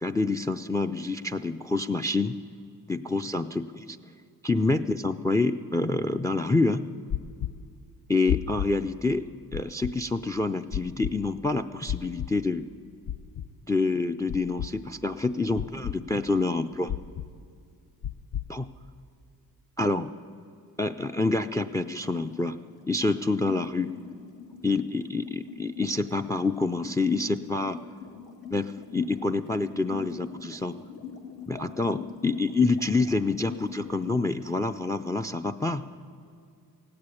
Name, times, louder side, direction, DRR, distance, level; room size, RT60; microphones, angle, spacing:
voice 1, 0.0-2.4 2.9-4.0 4.4-6.8 8.1-12.7 13.7-16.9 18.5-18.7 19.8-20.1 20.8-22.6 22.9-23.9 24.6-27.8 28.5-30.8 31.5-35.8, left 3 dB, 10° left, 10 dB, 0.4 m, -27 dB
sound 1, 7.1-7.5 8.3-8.7 9.5-9.9 10.7-11.1 11.9-12.3 13.1-13.5 14.3-14.7 15.6-16.0 16.9-17.3 18.0-18.5, left 10 dB, 55° left, 0.6 m, -30 dB
sound 2, 21.6-34.8, left 5 dB, 75° left, 2.0 m, -43 dB
16.0 x 8.7 x 9.7 m, 2.4 s
cardioid pair, 75°, 35 cm